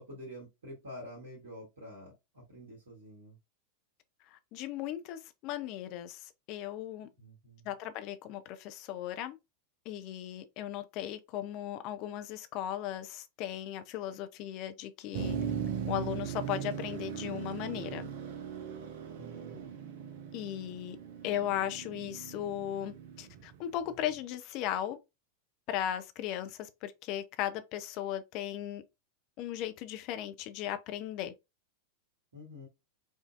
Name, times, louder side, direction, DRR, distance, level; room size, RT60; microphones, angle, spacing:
voice 1, 0.0-3.4 7.2-7.7 19.2-19.6 32.3-32.7, equal, 70° right, 1.6 m, -48 dB
voice 2, 4.3-7.1 7.6-9.4 9.9-15.4 15.9-18.1 20.3-21.0 21.2-25.0 25.7-28.8 29.4-31.3, left 11 dB, 40° left, 0.5 m, -37 dB
Motor vehicle (road), 15.1-24.1, right 7 dB, 50° right, 0.7 m, -39 dB
4.9 x 2.6 x 2.4 m
figure-of-eight pair, 90°, 0 cm